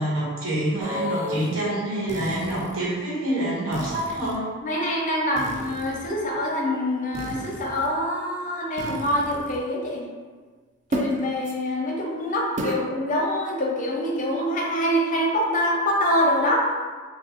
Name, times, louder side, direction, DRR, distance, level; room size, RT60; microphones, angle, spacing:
voice 1, 0.0-4.5, right 1 dB, 80° right, -6 dB, 1.2 m, -27 dB
sound 1, 0.8-1.6 2.1-2.7 3.7-4.4 5.4-6.1 7.1-7.9 8.8-9.6 10.9-11.2 11.5-11.6 12.6-12.8, equal, 35° right, 0.4 m, -32 dB
voice 2, 4.6-10.1 10.9-16.6, equal, 40° left, -1 dB, 0.6 m, -25 dB
4.3 x 2.2 x 2.9 m, 1.5 s
head